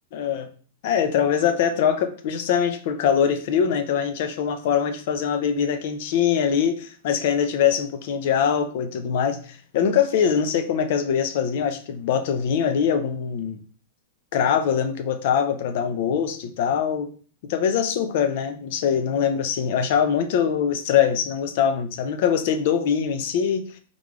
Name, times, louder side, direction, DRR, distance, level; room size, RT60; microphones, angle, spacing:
voice 1, 0.1-0.5 0.8-13.6 14.3-17.1 17.5-23.7, left 8 dB, 50° left, 8 dB, 0.4 m, -23 dB
3.7 x 3.2 x 2.3 m, 0.42 s
supercardioid pair, 160°, 0 cm